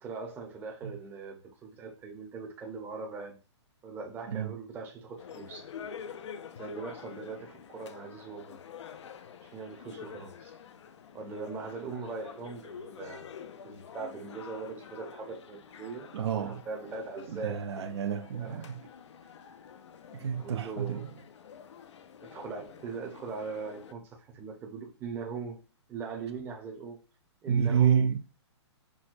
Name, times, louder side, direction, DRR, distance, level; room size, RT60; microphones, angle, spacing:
voice 1, 0.0-3.4 3.8-5.7 6.6-8.6 9.4-10.5 11.1-13.3 13.6-16.1 16.3-17.6 18.3-18.7 20.4-21.0 22.2-25.6 25.9-27.0 27.4-28.1, right 4 dB, 15° right, 0.7 m, -40 dB
sound 1, 5.2-23.9, left 7 dB, 75° left, 0.5 m, -48 dB
voice 2, 16.1-16.6 17.3-18.8 20.1-21.2 27.5-28.2, right 7 dB, 65° right, 0.6 m, -29 dB
6.1 x 2.1 x 2.5 m
hypercardioid pair, 150°, 15 cm